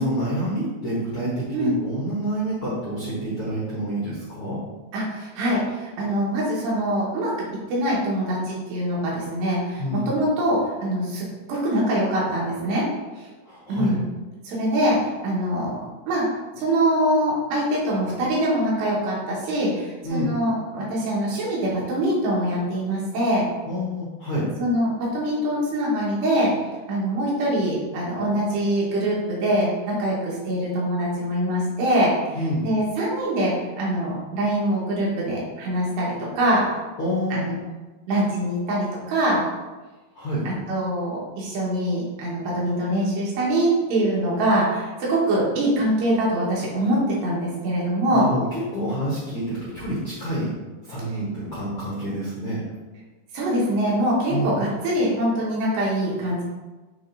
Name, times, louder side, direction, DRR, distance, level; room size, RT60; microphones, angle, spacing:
voice 1, 0.0-4.6 9.8-10.1 13.4-13.9 20.0-20.3 23.7-24.5 32.3-32.6 37.0-37.6 40.1-40.4 48.1-50.5 50.9-52.6 54.3-54.6, equal, 60° left, -8 dB, 1.4 m, -28 dB
voice 2, 4.9-7.3 7.7-12.9 13.2-13.3 13.7-14.0 14.5-15.8 16.1-16.3 16.6-23.5 24.6-26.5 26.9-32.1 32.6-36.8 37.3-37.5 38.1-39.4 40.5-48.3 53.3-56.4, right 1 dB, 80° right, -5 dB, 3.9 m, -23 dB
8.8 x 3.3 x 4.0 m, 1.2 s
omnidirectional pair, 4.8 m